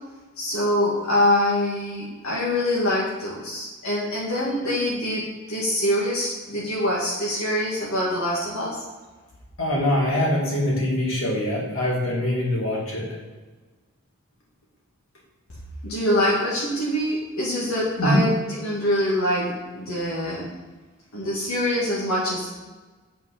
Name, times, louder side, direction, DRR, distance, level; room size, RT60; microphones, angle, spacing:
voice 1, 0.4-8.8 15.8-20.5 21.1-22.5, left 1 dB, 80° left, -6 dB, 1.9 m, -24 dB
voice 2, 9.6-13.1 18.0-18.3, left 1 dB, 65° left, -3 dB, 2.3 m, -23 dB
8.7 x 4.7 x 5.7 m, 1.3 s
head